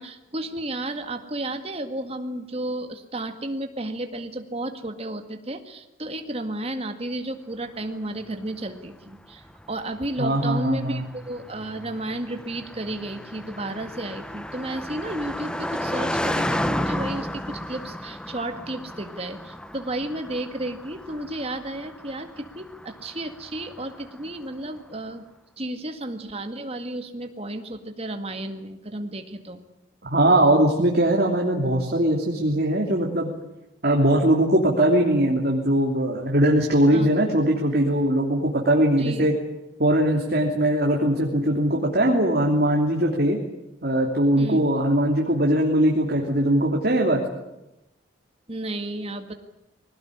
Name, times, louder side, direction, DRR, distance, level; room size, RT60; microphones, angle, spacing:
voice 1, 0.0-25.3 25.6-29.6 36.9-37.1 39.0-39.3 44.4-44.6 48.5-49.3, right 1 dB, 30° right, 6 dB, 2.0 m, -33 dB
Car passing by, 8.1-24.6, left 1 dB, 5° left, 0.8 m, -33 dB
voice 2, 10.2-11.0 30.0-33.3 33.8-39.4 39.8-43.4 43.8-47.2, right 1 dB, 50° right, 0 dB, 3.1 m, -21 dB
21.0 x 18.5 x 9.9 m, 0.92 s
head